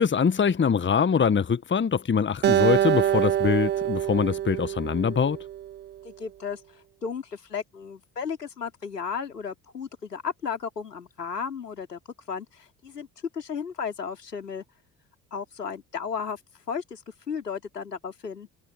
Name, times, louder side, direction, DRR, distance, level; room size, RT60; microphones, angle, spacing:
voice 1, 0.0-5.4, left 6 dB, 25° left, 1.6 m, -23 dB
Acoustic guitar, 2.4-5.8, right 11 dB, 25° right, 0.4 m, -25 dB
voice 2, 6.0-12.0 12.3-13.1 13.3-14.6 15.3-16.4 16.7-17.0 17.3-18.5, left 6 dB, 85° left, 3.6 m, -34 dB
figure-of-eight pair, 55°, 47 cm